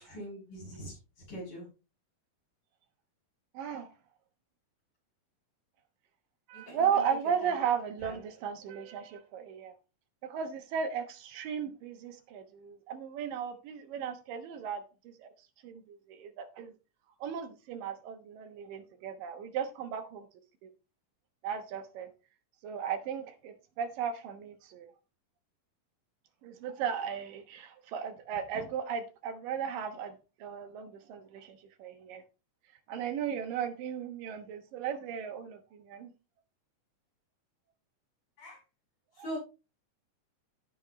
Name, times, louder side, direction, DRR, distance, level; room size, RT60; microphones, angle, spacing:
voice 1, 0.1-1.0 1.3-1.7 6.7-6.8 8.0-8.1 38.4-38.6 39.2-39.4, equal, 60° left, 8.2 m, -41 dB
voice 2, 3.5-3.9 6.5-9.7 10.2-15.3 15.6-16.7 17.2-20.3 20.6-20.7 21.4-22.1 22.6-24.9 26.4-32.2 32.9-36.1 39.2-39.3, right 7 dB, 80° right, 2.9 m, -36 dB
15.5 x 5.5 x 3.1 m
omnidirectional pair, 3.9 m